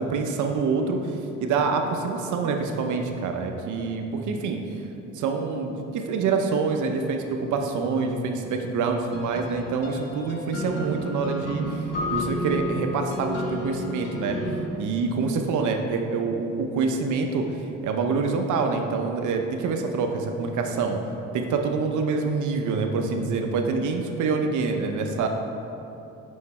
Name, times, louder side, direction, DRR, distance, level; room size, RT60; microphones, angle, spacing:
voice 1, 0.0-4.6 5.1-14.4 14.8-17.5 17.8-21.0 21.3-25.3, right 4 dB, 75° right, 4 dB, 0.8 m, -26 dB
sound 1, 9.1-14.7, equal, 55° left, 1.0 m, -32 dB
Keyboard (musical), 11.9-13.7, left 3 dB, 25° left, 1.5 m, -34 dB
6.5 x 5.7 x 4.2 m, 2.9 s
cardioid pair, 90°, 30 cm